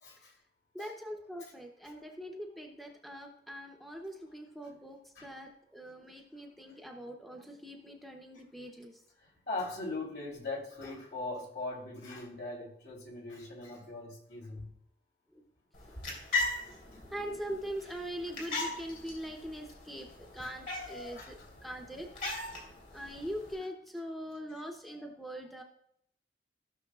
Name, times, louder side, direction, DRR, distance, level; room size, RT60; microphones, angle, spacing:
voice 1, 0.7-9.0 15.3-15.4 15.9-16.0 16.6-20.1 20.3-21.4 21.6-22.1 22.7-25.6, equal, ahead, 1 dB, 0.8 m, -42 dB
voice 2, 9.5-14.7 20.4-20.5 21.1-21.5 24.9-25.0, left 2 dB, 70° left, -3 dB, 3.1 m, -40 dB
sound 1, 15.7-23.6, left 2 dB, 55° left, 3.4 m, -39 dB
16.0 x 6.4 x 2.4 m, 0.74 s
head